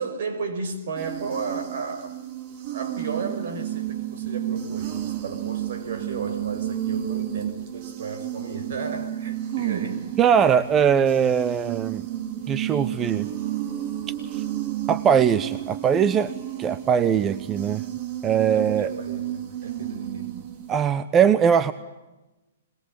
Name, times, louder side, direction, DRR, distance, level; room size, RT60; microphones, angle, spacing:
voice 1, 0.0-2.2 2.5-10.1 18.5-20.4, right 4 dB, 65° right, 5.6 m, -34 dB
sound 1, 1.0-20.8, right 12 dB, 45° right, 2.8 m, -32 dB
voice 2, 10.2-12.1 12.5-13.3 14.3-14.4 14.9-16.3 16.6-17.8 18.2-18.9 20.7-21.7, right 7 dB, 20° right, 0.9 m, -21 dB
26.5 x 21.5 x 8.7 m
hypercardioid pair, 130°, 0 cm